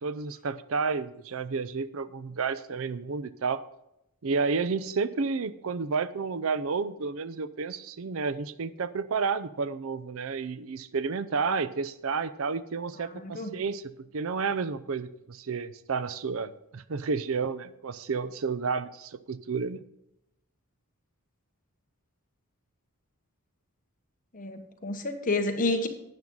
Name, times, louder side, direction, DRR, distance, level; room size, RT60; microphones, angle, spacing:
voice 1, 0.0-3.6 4.2-19.8, right 5 dB, 70° right, 15 dB, 0.5 m, -31 dB
voice 2, 13.1-13.5 24.3-25.9, left 2 dB, 40° left, 5 dB, 1.3 m, -29 dB
12.0 x 8.9 x 3.8 m, 0.84 s
head